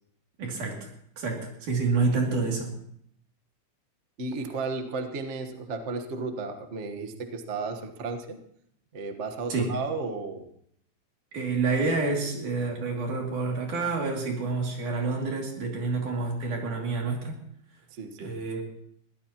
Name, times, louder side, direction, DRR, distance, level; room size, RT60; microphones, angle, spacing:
voice 1, 0.4-0.9 1.2-2.7 9.5-9.8 11.3-17.4 18.2-18.6, right 3 dB, 85° right, 0 dB, 4.2 m, -28 dB
voice 2, 4.2-8.4 8.9-10.4 17.9-18.3, right 3 dB, 50° right, 6 dB, 0.8 m, -34 dB
22.0 x 15.5 x 3.0 m, 0.69 s
omnidirectional pair, 3.4 m